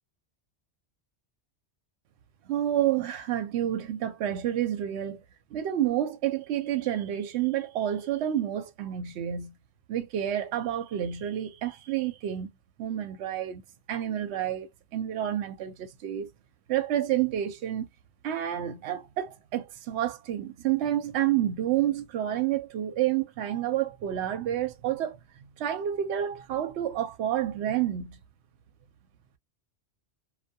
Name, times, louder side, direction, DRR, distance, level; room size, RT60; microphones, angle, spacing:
voice 1, 2.5-5.2 5.5-9.5 9.9-12.5 12.8-13.6 13.9-16.3 16.7-17.9 18.2-25.2 25.6-28.2, right 11 dB, 75° right, 0.8 m, -29 dB
2.2 x 2.2 x 2.6 m
omnidirectional pair, 1.2 m